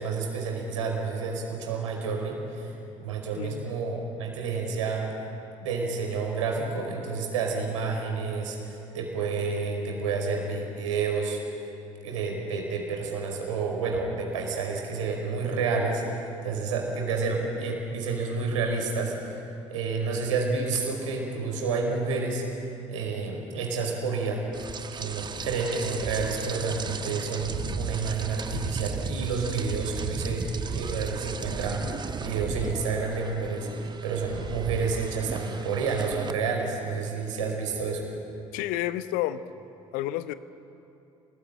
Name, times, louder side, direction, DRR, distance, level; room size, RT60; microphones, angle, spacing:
voice 1, 0.0-5.1 5.6-11.4 12.0-19.4 19.7-22.4 22.9-24.5 24.9-30.5 30.8-38.0, right 4 dB, 70° right, 1 dB, 5.1 m, -29 dB
voice 2, 3.3-3.7 38.5-39.4 39.9-40.3, left 14 dB, 60° left, 13 dB, 1.0 m, -30 dB
Rain, 24.5-36.3, right 5 dB, 25° right, 1.2 m, -35 dB
27.5 x 20.0 x 9.0 m, 2.8 s
figure-of-eight pair, 55°, 17 cm